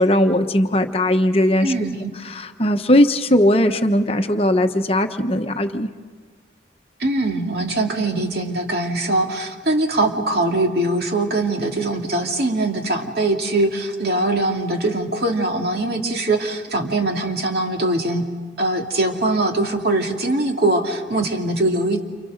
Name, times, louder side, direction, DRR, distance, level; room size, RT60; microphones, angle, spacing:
voice 1, 0.0-1.7 2.2-5.9, left 1 dB, 30° left, 7 dB, 1.1 m, -18 dB
voice 2, 1.6-2.1 7.0-18.3 18.6-22.0, right 2 dB, 55° right, 2 dB, 2.7 m, -22 dB
29.5 x 28.5 x 6.6 m, 1.5 s
head